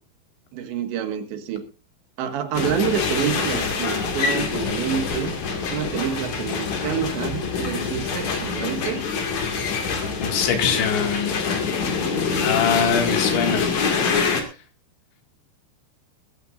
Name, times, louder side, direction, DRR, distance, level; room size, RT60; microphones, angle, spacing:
voice 1, 0.5-1.7 2.2-5.4 5.7-9.1, right 9 dB, 80° right, 7 dB, 3.9 m, -28 dB
sound 1, 2.5-14.4, left 5 dB, 50° left, 3.0 m, -25 dB
voice 2, 10.2-11.5 12.4-13.7, left 7 dB, 85° left, 5 dB, 4.4 m, -23 dB
20.0 x 15.0 x 2.6 m, 0.31 s
omnidirectional pair, 5.0 m